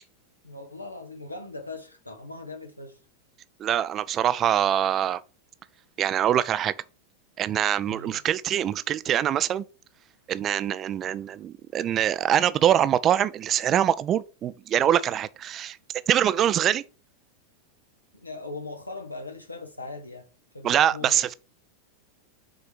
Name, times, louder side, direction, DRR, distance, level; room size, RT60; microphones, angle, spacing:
voice 1, 0.4-3.0 7.9-8.2 18.1-20.3 20.5-21.3, left 2 dB, 85° left, 1.5 m, -39 dB
voice 2, 3.6-5.2 6.0-6.7 7.4-9.6 10.3-15.8 16.1-16.8 20.6-21.3, right 10 dB, 30° right, 0.5 m, -24 dB
6.5 x 4.5 x 5.0 m
figure-of-eight pair, 90°, 0 cm